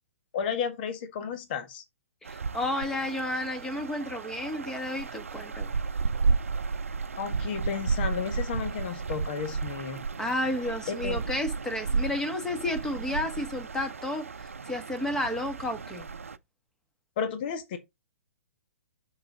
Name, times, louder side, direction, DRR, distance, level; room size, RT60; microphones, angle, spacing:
voice 1, 0.3-1.8 7.2-10.0 11.0-11.2 17.2-17.8, left 7 dB, 45° left, 1.6 m, -32 dB
voice 2, 2.2-5.7 10.2-16.1, left 1 dB, 5° left, 1.7 m, -32 dB
sound 1, 2.2-16.4, right 4 dB, 75° right, 0.6 m, -33 dB
6.7 x 6.4 x 3.8 m
figure-of-eight pair, 120°, 7 cm